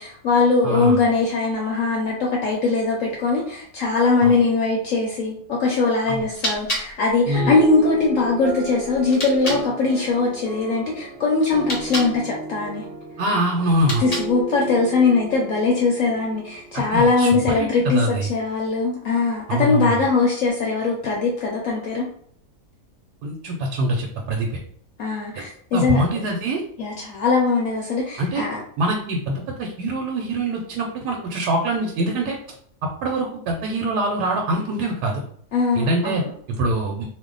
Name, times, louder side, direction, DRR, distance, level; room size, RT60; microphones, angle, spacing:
voice 1, 0.0-12.8 14.0-22.1 25.0-26.3 26.8-28.6 35.5-36.3, left 4 dB, 70° left, -1 dB, 0.8 m, -21 dB
voice 2, 0.6-1.0 4.2-4.4 6.1-6.2 7.3-7.6 13.2-14.1 16.9-18.3 19.5-20.1 23.2-24.5 25.4-25.5 25.7-26.6 28.2-28.4 28.8-32.4 32.8-35.2 35.7-36.2 36.5-37.0, right 1 dB, 90° right, 0 dB, 1.1 m, -24 dB
sound 1, 6.3-9.7 11.5-12.2 13.7-14.5, equal, 40° left, 0.6 m, -32 dB
sound 2, 7.3-17.1, right 3 dB, 20° right, 0.5 m, -33 dB
2.7 x 2.1 x 3.7 m, 0.62 s
omnidirectional pair, 1.7 m